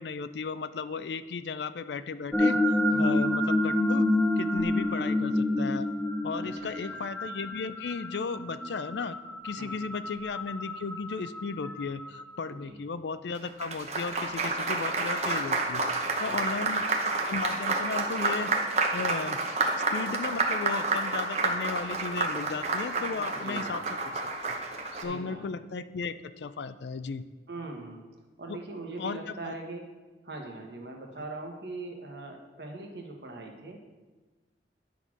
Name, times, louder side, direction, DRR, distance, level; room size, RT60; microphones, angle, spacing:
voice 1, 0.0-2.6 3.0-4.1 4.4-5.9 6.2-9.2 9.4-15.8 16.2-18.5 18.9-19.4 19.9-24.6 25.0-27.2 28.5-28.6 29.0-29.5, left 4 dB, 75° left, 13 dB, 0.4 m, -35 dB
sound 1, 2.3-12.3, left 1 dB, 5° left, 0.5 m, -28 dB
voice 2, 6.4-7.0 9.6-9.9 12.5-12.8 16.2-16.6 23.3-23.8 24.9-25.5 27.5-28.0 28.4-29.8 30.2-33.8, right 2 dB, 70° right, 2 dB, 1.2 m, -41 dB
Applause, 13.3-25.0, right 3 dB, 40° right, 0.9 m, -29 dB
10.0 x 4.1 x 6.0 m, 1.3 s
head